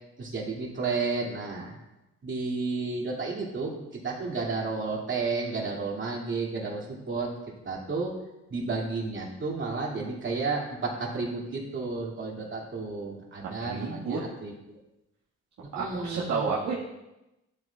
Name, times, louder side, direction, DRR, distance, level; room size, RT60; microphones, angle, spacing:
voice 1, 0.2-1.8 2.2-7.3 7.6-8.1 8.5-14.5 15.8-16.4, right 4 dB, 40° right, -2 dB, 2.6 m, -32 dB
voice 2, 13.6-14.2 15.7-16.7, right 4 dB, 70° right, -7 dB, 1.8 m, -30 dB
12.0 x 8.0 x 2.4 m, 0.95 s
cardioid pair, 90°, 30 cm